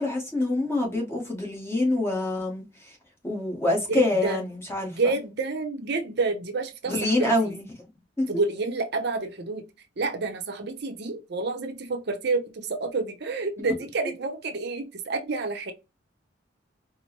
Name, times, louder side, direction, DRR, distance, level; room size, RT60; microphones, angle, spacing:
voice 1, 0.0-2.6 3.2-4.9 6.9-7.6 8.2-8.3, left 2 dB, 15° left, 1.2 m, -26 dB
voice 2, 3.9-4.4 4.9-7.5 8.3-9.6 10.0-15.7, right 3 dB, 60° right, 0.6 m, -29 dB
4.4 x 2.0 x 2.9 m
head